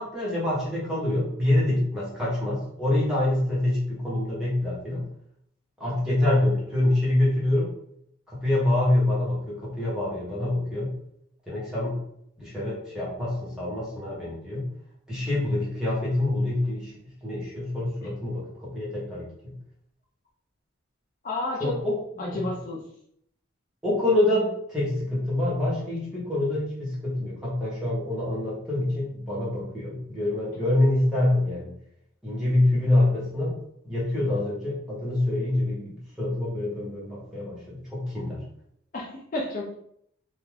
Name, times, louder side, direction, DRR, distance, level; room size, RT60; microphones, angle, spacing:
voice 1, 0.0-5.1 5.8-7.7 8.3-10.9 11.5-12.0 12.4-14.7 15.1-16.9 17.2-19.5 21.6-22.4 23.8-31.7 32.2-33.6 33.8-38.4, left 1 dB, 5° right, -7 dB, 1.0 m, -26 dB
voice 2, 21.2-21.7 22.2-22.8 38.9-39.7, left 2 dB, 40° left, -2 dB, 0.4 m, -31 dB
2.5 x 2.3 x 3.2 m, 0.70 s
head